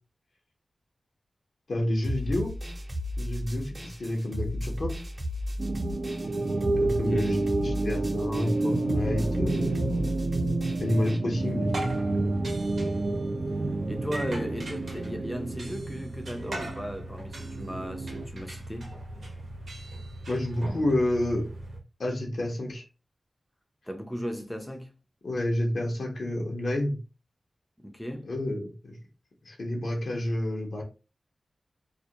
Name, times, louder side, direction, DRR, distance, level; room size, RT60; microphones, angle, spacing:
voice 1, 1.7-2.5 3.2-4.9 6.8-9.8 10.8-11.7 20.3-21.5 22.0-22.8 25.2-27.0 28.2-29.0 29.4-30.8, left 1 dB, 75° left, 0.7 m, -29 dB
sound 1, 2.0-11.2, left 1 dB, 45° right, 0.9 m, -35 dB
sound 2, 5.6-18.2, right 2 dB, 65° right, 0.4 m, -30 dB
voice 2, 6.9-7.2 13.9-18.9 23.9-24.9 27.8-28.3, equal, 10° left, 0.5 m, -36 dB
sound 3, 11.3-21.8, right 1 dB, 80° right, 0.8 m, -39 dB
2.4 x 2.1 x 2.7 m
cardioid pair, 45°, 0 cm